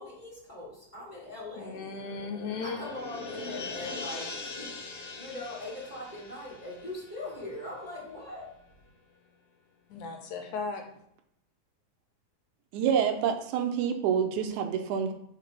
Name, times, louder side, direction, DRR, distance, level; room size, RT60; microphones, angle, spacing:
voice 1, 0.0-1.8 2.6-4.7 5.1-8.4, left 1 dB, 15° left, -6 dB, 3.0 m, -41 dB
sound 1, 1.0-8.0 8.3-8.4, left 3 dB, 60° left, 2.2 m, -42 dB
voice 2, 1.6-2.8 9.9-10.9, left 4 dB, 75° left, 4 dB, 2.1 m, -36 dB
voice 3, 12.7-15.1, right 8 dB, 80° right, 5 dB, 2.0 m, -27 dB
6.6 x 4.7 x 5.2 m, 0.72 s
omnidirectional pair, 3.6 m